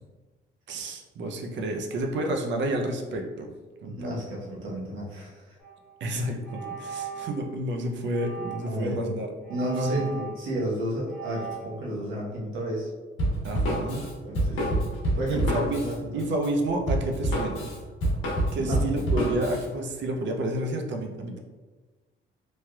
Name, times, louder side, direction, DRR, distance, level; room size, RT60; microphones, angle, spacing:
voice 1, 0.7-3.5 3.8-4.2 6.0-9.3 9.6-10.1 13.4-14.0 15.3-15.8 16.1-17.7 18.5-21.4, right 1 dB, 65° right, 3 dB, 0.5 m, -30 dB
voice 2, 3.8-5.6 8.6-9.1 9.5-12.9 14.2-14.8 15.1-16.1 18.6-18.8, equal, 85° right, -5 dB, 1.0 m, -31 dB
sound 1, 5.6-5.8 6.4-7.5 8.1-8.8 9.4-10.7 11.1-11.7, right 6 dB, ahead, 1.2 m, -38 dB
Drum kit, 13.2-19.7, right 1 dB, 90° left, 1.0 m, -27 dB
3.2 x 2.8 x 2.3 m, 1.3 s
cardioid pair, 90°, 20 cm